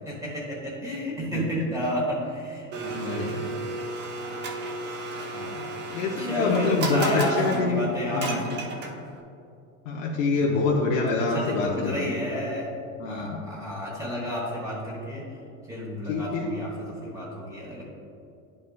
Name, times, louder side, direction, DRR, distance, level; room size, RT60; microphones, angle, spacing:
voice 1, 0.0-4.0 5.3-5.6 6.2-8.7 10.3-10.6 11.2-12.7 13.0-15.3 15.7-17.8, equal, 10° right, -4 dB, 1.0 m, -32 dB
Domestic sounds home sounds, 2.7-9.2, right 2 dB, 25° right, 0.7 m, -34 dB
voice 2, 2.9-3.4 5.1-5.6 5.9-8.4 9.8-12.1 13.0-13.4 16.1-16.5, left 3 dB, 75° left, -2 dB, 0.9 m, -26 dB
9.5 x 5.5 x 2.3 m, 2.6 s
supercardioid pair, 135°, 39 cm